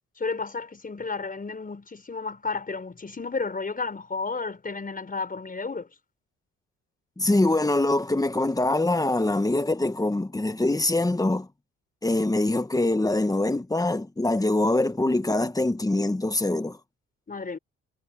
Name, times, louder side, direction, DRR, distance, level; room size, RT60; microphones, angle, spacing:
voice 1, 0.2-5.9 17.3-17.6, left 4 dB, 30° left, 4.9 m, -32 dB
voice 2, 7.2-11.5 12.0-16.8, left 2 dB, 10° left, 1.5 m, -24 dB
cardioid pair, 90°, 30 cm